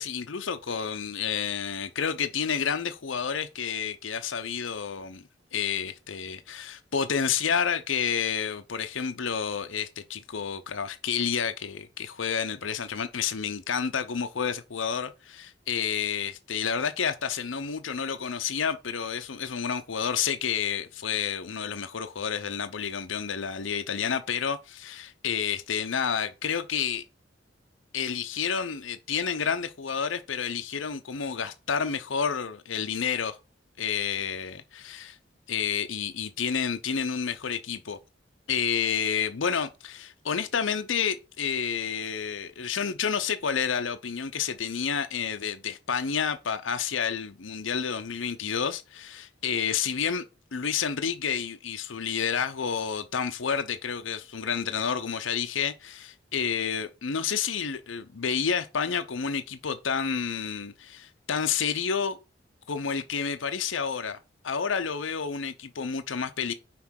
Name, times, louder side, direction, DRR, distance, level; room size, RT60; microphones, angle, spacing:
voice 1, 0.0-5.2 5.5-27.0 27.9-33.4 33.8-35.2 35.5-38.0 38.5-50.2 50.5-62.2 62.7-64.2 64.4-66.5, left 7 dB, 85° left, 0.7 m, -30 dB
5.9 x 4.6 x 6.3 m
head